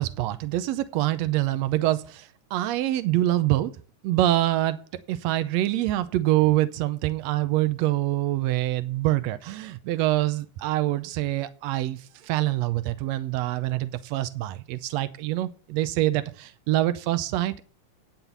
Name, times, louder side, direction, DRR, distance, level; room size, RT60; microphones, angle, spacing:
voice 1, 0.0-3.7 4.0-4.8 5.1-17.6, right 15 dB, 80° right, 12 dB, 1.6 m, -25 dB
9.3 x 5.7 x 8.2 m, 0.40 s
omnidirectional pair, 3.8 m